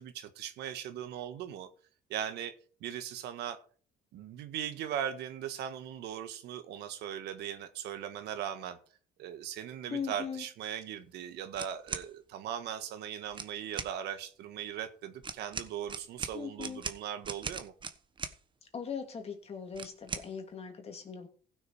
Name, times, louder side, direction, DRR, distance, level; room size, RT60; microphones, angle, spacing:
voice 1, 0.0-1.7 2.1-2.5 2.8-3.6 4.1-8.8 9.2-17.7, right 10 dB, 80° right, 1.5 m, -39 dB
voice 2, 9.9-10.4 16.3-16.8 18.7-21.3, left 6 dB, 35° left, 2.6 m, -39 dB
sound 1, 11.5-12.1 13.3-13.9 15.2-18.4 19.7-20.3, right 5 dB, 30° right, 1.2 m, -39 dB
15.5 x 6.4 x 5.0 m
cardioid pair, 110°, 17 cm